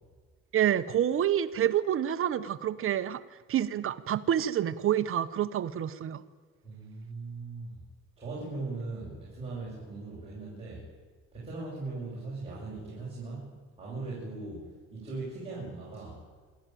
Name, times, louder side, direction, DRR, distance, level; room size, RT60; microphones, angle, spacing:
voice 1, 0.5-3.2 3.5-6.2, right 10 dB, 45° right, 13 dB, 0.8 m, -28 dB
voice 2, 6.6-7.8 8.2-10.9 11.3-16.2, right 3 dB, 20° right, -7 dB, 7.0 m, -39 dB
27.0 x 12.5 x 9.1 m, 1.5 s
cardioid pair, 160°, 31 cm